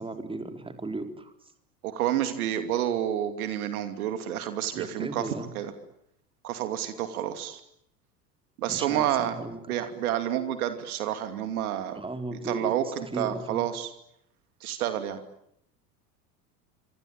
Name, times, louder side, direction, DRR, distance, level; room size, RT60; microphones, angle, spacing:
voice 1, 0.0-1.5 4.8-5.5 8.7-9.6 11.9-12.7 13.0-13.6, right 2 dB, 10° right, 7 dB, 4.0 m, -36 dB
voice 2, 1.8-5.2 5.5-5.7 6.4-7.6 8.6-9.4 9.7-12.0 12.4-13.9 14.6-15.2, right 11 dB, 60° right, 9 dB, 2.8 m, -29 dB
26.0 x 25.5 x 8.9 m, 0.74 s
figure-of-eight pair, 75°, 48 cm